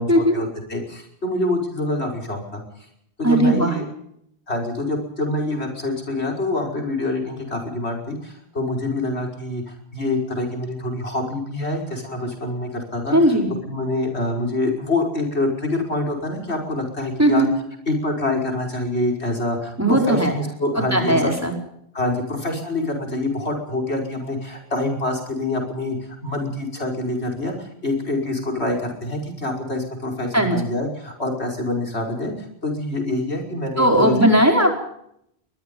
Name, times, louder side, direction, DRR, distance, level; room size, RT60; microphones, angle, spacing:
voice 1, 0.0-2.9 3.2-3.8 4.5-13.2 13.7-17.5 17.9-21.3 21.9-26.0 26.2-32.3 32.6-34.2, left 2 dB, 80° left, 2 dB, 5.8 m, -26 dB
voice 2, 3.2-3.7 13.1-13.5 17.2-17.5 19.8-20.3 20.9-21.5 30.3-30.6 33.8-34.7, right 1 dB, 15° right, 2 dB, 4.9 m, -17 dB
22.0 x 21.5 x 5.5 m, 0.74 s
omnidirectional pair, 1.1 m